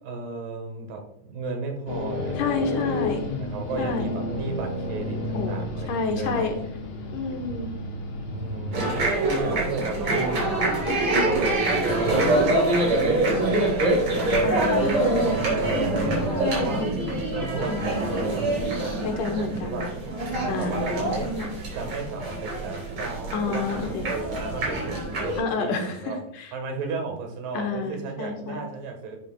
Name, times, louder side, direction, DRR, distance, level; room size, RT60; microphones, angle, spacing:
voice 1, 0.0-6.5 7.3-7.4 8.3-11.6 12.0-16.8 17.3-19.8 20.4-21.3 21.8-26.2 26.5-29.2, right 3 dB, 75° right, 4 dB, 3.0 m, -34 dB
sound 1, 1.9-8.9, left 2 dB, 50° left, 1.8 m, -31 dB
voice 2, 2.4-3.2 3.8-4.1 5.3-5.6 5.9-6.6 7.1-7.7 10.9-11.3 14.4-15.4 16.2-17.2 17.6-18.1 19.0-19.9 20.5-21.5 23.3-24.1 25.4-26.5 27.5-28.6, left 4 dB, 70° left, 4 dB, 2.5 m, -30 dB
sound 2, 8.7-25.4, right 2 dB, 40° right, 4.4 m, -25 dB
11.5 x 7.7 x 2.3 m, 0.69 s
omnidirectional pair, 3.9 m